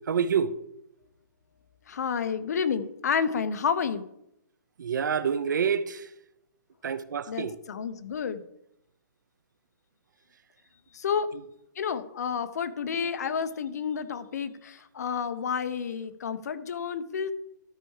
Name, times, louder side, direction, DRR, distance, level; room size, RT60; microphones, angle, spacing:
voice 1, 0.1-0.5 4.8-6.1 6.8-7.6, right 7 dB, 70° right, 0.7 m, -27 dB
voice 2, 1.9-4.0 7.3-8.4 10.9-11.3 11.8-17.3, left 6 dB, 55° left, 0.8 m, -30 dB
12.5 x 4.6 x 4.8 m
hypercardioid pair, 170°, 10 cm